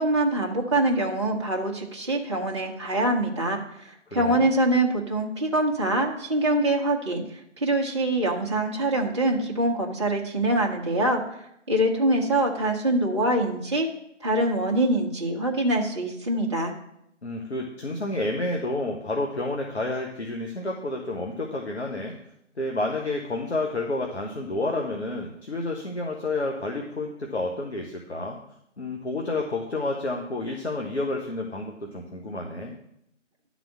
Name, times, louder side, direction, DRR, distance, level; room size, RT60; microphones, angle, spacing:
voice 1, 0.0-7.2 7.6-13.9 14.2-16.7, right 1 dB, 25° right, -1 dB, 0.9 m, -24 dB
voice 2, 4.1-4.5 17.2-22.1 22.6-28.4 28.8-32.7, left 2 dB, 60° left, 1 dB, 1.3 m, -30 dB
10.5 x 4.2 x 7.2 m, 0.76 s
figure-of-eight pair, 155°, 37 cm